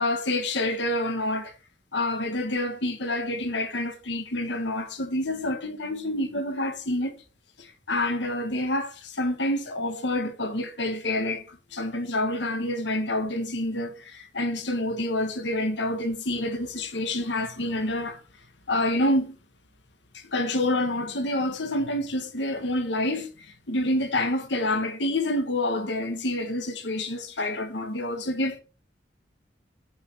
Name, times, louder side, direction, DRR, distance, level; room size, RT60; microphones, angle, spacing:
voice 1, 0.0-1.6 1.9-7.2 7.6-18.2 18.7-19.4 20.1-28.6, left 1 dB, 75° left, 1.4 m, -28 dB
7.1 x 6.0 x 6.1 m
head